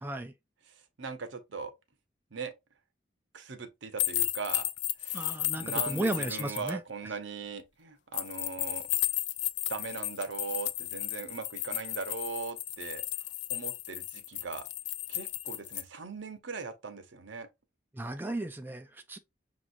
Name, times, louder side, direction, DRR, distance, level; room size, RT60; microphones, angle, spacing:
voice 1, 0.0-0.3 5.1-6.8 17.9-19.2, right 1 dB, 10° right, 0.3 m, -35 dB
voice 2, 1.0-1.7 2.3-2.5 3.3-4.7 5.0-8.9 9.7-13.0 13.5-14.7 15.1-17.5, right 4 dB, 85° right, 0.8 m, -39 dB
sound 1, 4.0-6.7 8.1-15.8, left 14 dB, 65° left, 0.4 m, -34 dB
6.0 x 3.0 x 2.5 m
head